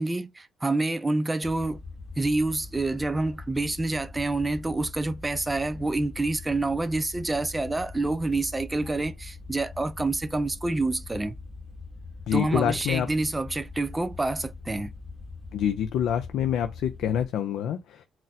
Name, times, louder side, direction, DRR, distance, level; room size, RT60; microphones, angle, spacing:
voice 1, 0.0-1.8 2.2-11.4 12.3-14.9, right 2 dB, 15° right, 0.4 m, -27 dB
sound 1, 1.4-17.3, left 3 dB, 25° left, 1.0 m, -42 dB
voice 2, 12.3-13.1 15.5-18.0, left 9 dB, 80° left, 0.4 m, -26 dB
4.0 x 2.1 x 2.5 m
cardioid pair, 90°, 0 cm